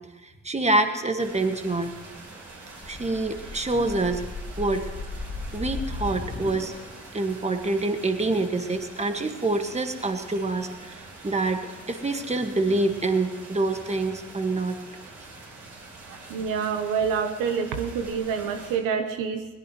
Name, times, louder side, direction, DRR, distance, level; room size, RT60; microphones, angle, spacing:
voice 1, 0.2-1.9 2.9-4.2 4.6-4.9 5.5-6.7 7.1-14.8, right 2 dB, 20° right, 6 dB, 1.8 m, -26 dB
sound 1, 1.2-18.8, right 2 dB, 65° right, 5.6 m, -45 dB
sound 2, 2.8-7.1, left 3 dB, 35° left, 3.0 m, -36 dB
voice 2, 16.1-19.5, right 6 dB, 80° right, 7 dB, 1.1 m, -27 dB
21.5 x 17.5 x 3.2 m, 1.2 s
supercardioid pair, 55°, 32 cm